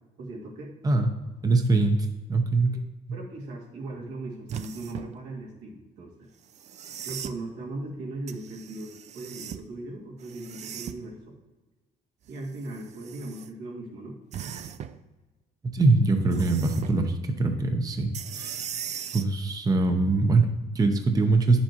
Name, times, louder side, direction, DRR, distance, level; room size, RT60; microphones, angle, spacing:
voice 1, 0.2-0.7 2.7-2.8 3.1-6.3 7.0-11.4 12.3-14.2, right 2 dB, 90° right, -3 dB, 2.3 m, -38 dB
voice 2, 1.4-2.8 15.6-18.6 19.1-21.6, right 3 dB, 20° right, 5 dB, 0.7 m, -23 dB
sound 1, 4.5-5.1 6.5-7.4 8.3-9.7 10.2-11.1 12.3-13.5 14.3-15.0 16.3-17.0 18.1-19.3 21.0-21.1, right 8 dB, 40° right, 0.4 m, -38 dB
9.2 x 7.1 x 2.9 m, 1.2 s
cardioid pair, 110°, 17 cm